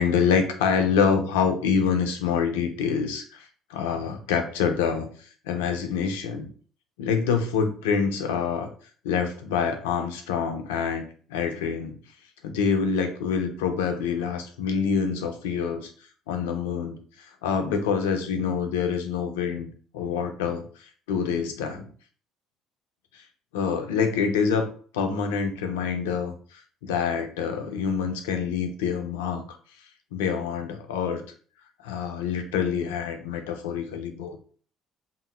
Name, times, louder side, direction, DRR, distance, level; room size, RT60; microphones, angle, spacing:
voice 1, 0.0-6.5 7.0-8.7 9.0-11.0 11.3-12.0 12.4-15.9 16.3-19.7 19.9-21.9 23.1-23.2 23.5-29.4 30.1-31.2 31.8-34.4, left 6 dB, 90° left, 6 dB, 0.5 m, -26 dB
3.7 x 2.1 x 2.2 m, 0.43 s
hypercardioid pair, 65°, 0 cm